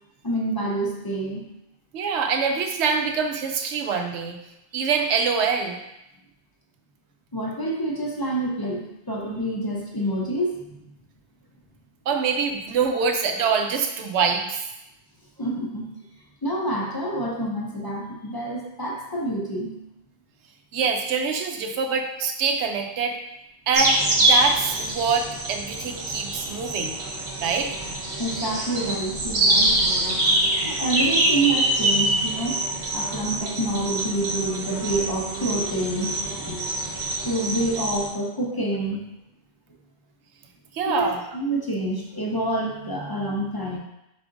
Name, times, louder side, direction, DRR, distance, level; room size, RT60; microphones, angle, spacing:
voice 1, 0.2-1.5 7.3-10.8 15.4-15.9 16.4-19.8 28.2-29.8 30.6-32.6 32.9-36.7 37.2-39.0 40.9-43.8, right 1 dB, 30° left, -2 dB, 0.5 m, -27 dB
voice 2, 1.9-4.4 4.7-5.8 12.1-14.6 20.7-23.2 23.7-27.0 27.4-27.8 40.7-41.2, right 5 dB, 85° right, 4 dB, 0.9 m, -25 dB
sound 1, 23.7-38.1, right 1 dB, 60° right, 1.0 m, -25 dB
4.7 x 4.2 x 2.6 m, 0.88 s
omnidirectional pair, 1.1 m